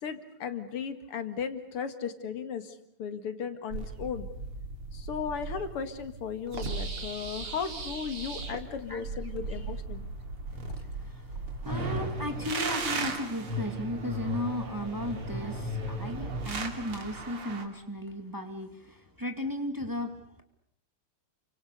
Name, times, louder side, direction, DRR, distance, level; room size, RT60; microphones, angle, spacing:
voice 1, 0.0-4.3 4.9-10.1, left 7 dB, 85° left, 10 dB, 2.7 m, -36 dB
sound 1, 3.7-17.6, right 2 dB, 80° right, 3.7 m, -36 dB
voice 2, 8.7-9.7 10.5-20.4, equal, 10° right, 5 dB, 2.3 m, -36 dB
29.5 x 25.0 x 6.7 m, 0.68 s
omnidirectional pair, 2.4 m